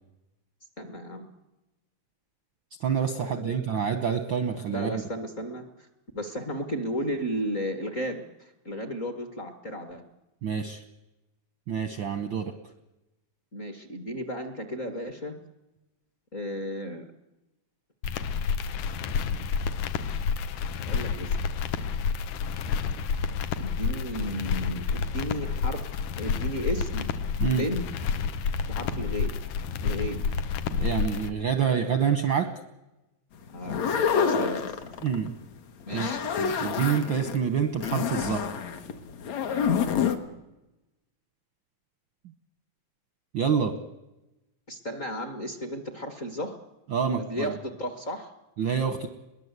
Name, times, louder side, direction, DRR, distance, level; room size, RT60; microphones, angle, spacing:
voice 1, 0.8-1.3 3.4-3.7 4.7-5.9 6.1-10.0 13.5-15.4 16.3-17.1 20.7-21.4 23.6-25.9 26.2-27.1 27.4-27.9 28.7-29.3 29.8-30.3 33.5-34.9 35.8-36.2 44.7-46.6 47.2-48.3, equal, 40° left, 8 dB, 1.2 m, -34 dB
voice 2, 2.8-5.0 10.4-10.8 11.7-12.5 27.4-27.6 30.7-32.5 35.0-35.4 35.9-36.1 36.4-38.5 43.3-43.7 46.9-47.5 48.6-49.1, right 7 dB, 70° right, 9 dB, 1.1 m, -27 dB
sound 1, 18.0-31.3, left 6 dB, 85° left, 2.4 m, -29 dB
sound 2, 33.6-35.3 35.8-37.4 37.8-40.2, left 7 dB, 65° left, 2.5 m, -27 dB
22.0 x 18.0 x 8.1 m, 0.99 s
omnidirectional pair, 3.4 m